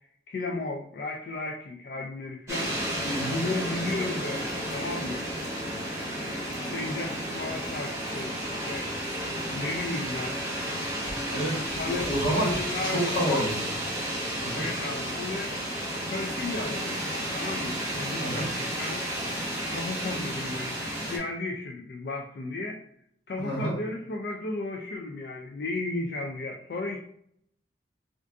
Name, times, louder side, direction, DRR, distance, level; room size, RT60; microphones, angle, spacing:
voice 1, 0.3-2.8 3.3-5.3 6.6-8.9 9.5-10.5 11.7-12.1 12.4-13.5 14.5-15.6 16.0-17.0 17.3-19.0 19.7-22.8 23.3-27.0, left 2 dB, 55° left, 0 dB, 0.3 m, -34 dB
sound 1, 2.5-21.2, equal, 15° right, 0.8 m, -32 dB
voice 2, 3.0-3.3 11.3-12.5 12.8-13.7 14.4-14.7 18.2-18.5 23.4-23.8, right 1 dB, 90° left, -4 dB, 1.3 m, -29 dB
2.5 x 2.5 x 3.4 m, 0.68 s
head